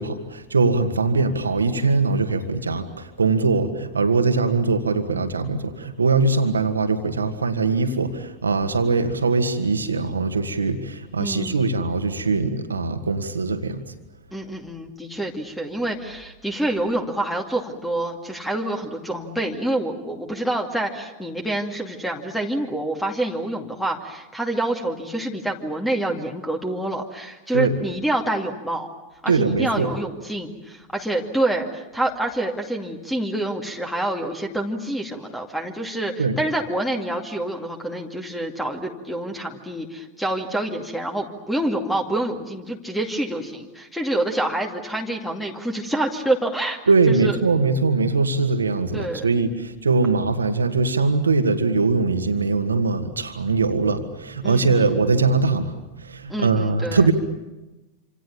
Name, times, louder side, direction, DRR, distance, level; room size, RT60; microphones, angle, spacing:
voice 1, 0.0-13.8 27.5-27.8 29.3-29.9 36.2-36.4 46.9-57.1, right 4 dB, 75° right, 7 dB, 2.2 m, -21 dB
voice 2, 11.2-11.8 14.3-28.9 29.2-46.8 47.1-47.4 48.9-49.3 54.4-55.1 56.3-57.1, right 1 dB, 5° left, 3 dB, 2.4 m, -27 dB
27.0 x 27.0 x 7.1 m, 1.1 s
figure-of-eight pair, 90°, 0 cm